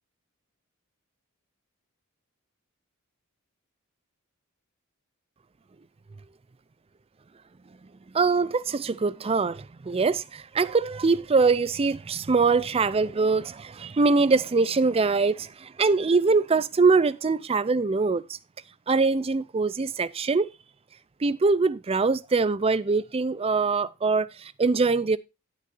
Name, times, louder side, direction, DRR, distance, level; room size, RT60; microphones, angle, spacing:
voice 1, 8.1-18.2 18.9-20.5 21.2-25.2, right 4 dB, 25° right, 0.4 m, -23 dB
17.5 x 6.2 x 2.6 m
head